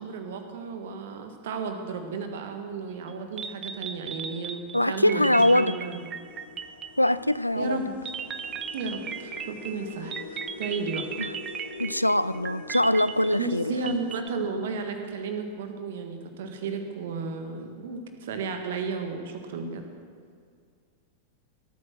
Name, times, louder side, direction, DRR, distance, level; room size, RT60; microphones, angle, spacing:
voice 1, 0.0-6.1 7.5-7.9 8.7-10.1 10.6-11.1 13.3-19.8, right 4 dB, 55° right, 6 dB, 1.7 m, -33 dB
sound 1, 3.1-3.2 3.4-7.4 8.1-14.3, right 7 dB, 25° right, 0.7 m, -37 dB
sound 2, 3.6-3.8 4.7-4.8 5.2-15.0, left 4 dB, 60° left, 1.2 m, -45 dB
voice 2, 4.7-5.8 7.0-7.8 11.2-11.3 11.8-13.9, left 1 dB, 85° left, 17 dB, 0.3 m, -23 dB
17.0 x 9.2 x 6.3 m, 2.2 s
figure-of-eight pair, 90°, 0 cm